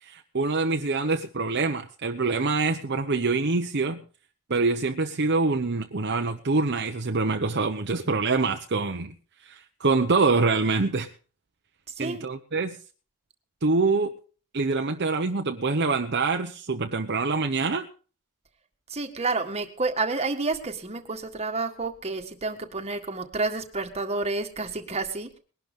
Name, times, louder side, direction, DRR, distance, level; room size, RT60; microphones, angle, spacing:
voice 1, 0.0-4.0 4.5-9.1 9.4-11.1 12.0-12.8 13.6-14.1 14.5-17.9, right 3 dB, 50° right, 0.9 m, -25 dB
voice 2, 11.9-12.2 18.9-25.4, right 3 dB, 30° right, 1.7 m, -30 dB
20.5 x 12.0 x 3.7 m
head